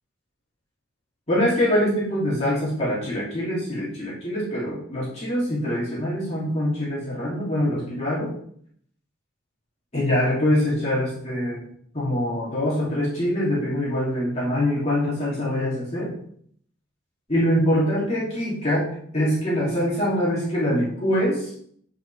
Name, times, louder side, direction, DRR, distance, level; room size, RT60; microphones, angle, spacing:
voice 1, 1.3-8.3 9.9-11.6 11.9-16.1 17.3-18.9 19.1-21.5, equal, 30° left, -8 dB, 2.7 m, -24 dB
8.8 x 5.4 x 3.4 m, 0.63 s
head